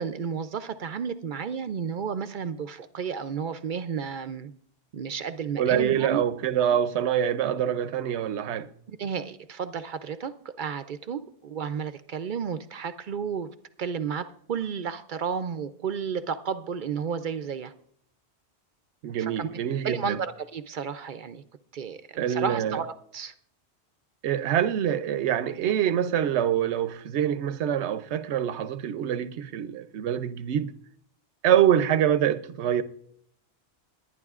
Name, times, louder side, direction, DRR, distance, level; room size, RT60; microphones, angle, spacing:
voice 1, 0.0-4.5 4.9-6.2 8.9-13.5 13.8-17.7 19.2-19.5 19.8-21.4 21.7-23.3, right 6 dB, 55° right, 0.6 m, -32 dB
voice 2, 5.6-8.7 19.0-20.2 22.2-22.8 24.2-30.7 31.4-32.8, right 9 dB, 80° right, 0.9 m, -25 dB
22.0 x 9.7 x 2.4 m
omnidirectional pair, 1.1 m